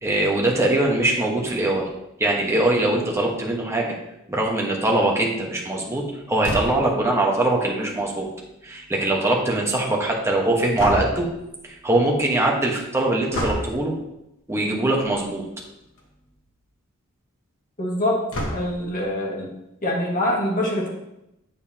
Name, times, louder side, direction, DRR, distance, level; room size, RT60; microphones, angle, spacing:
voice 1, 0.0-1.9 2.2-4.0 4.3-8.3 8.6-11.3 11.6-13.9 14.5-15.4, right 2 dB, 15° right, -1 dB, 1.2 m, -22 dB
sound 1, 6.4-7.0 10.8-11.4 13.3-13.8 15.0-15.2 15.6-15.7 16.0-16.1 18.3-18.9, equal, 65° left, 1.4 m, -28 dB
voice 2, 17.8-18.2 18.5-19.5 19.8-20.9, left 1 dB, 40° left, -3 dB, 1.9 m, -24 dB
8.1 x 6.9 x 2.8 m, 0.87 s
head